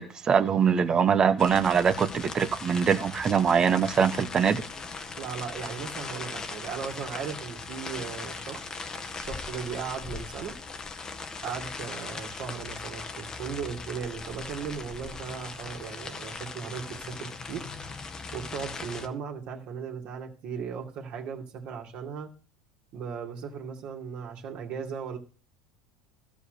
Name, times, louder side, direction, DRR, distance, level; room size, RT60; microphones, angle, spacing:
voice 1, 0.0-4.6, right 7 dB, 30° right, 1.0 m, -23 dB
sound 1, 1.4-19.1, left 4 dB, 25° left, 1.3 m, -39 dB
voice 2, 5.2-8.8 9.1-10.6 11.4-17.7 18.3-22.3 22.9-25.2, right 7 dB, 50° right, 2.3 m, -37 dB
13.0 x 5.1 x 6.7 m
hypercardioid pair, 100°, 3 cm